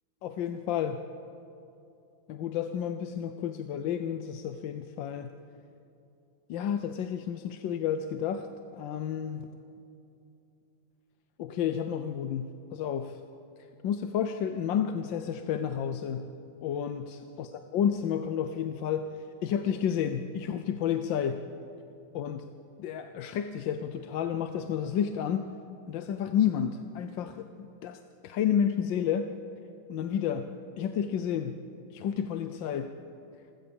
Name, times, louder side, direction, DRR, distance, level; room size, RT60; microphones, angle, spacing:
voice 1, 0.2-1.0 2.3-5.3 6.5-8.5 8.7-9.5 11.4-13.2 13.8-16.3 16.6-19.1 19.4-21.4 22.1-22.5 22.8-25.5 25.9-29.4 29.9-30.5 30.8-31.6 31.9-32.9, left 8 dB, 70° left, 8 dB, 1.4 m, -31 dB
26.5 x 15.5 x 7.1 m, 2.7 s
omnidirectional pair, 2.2 m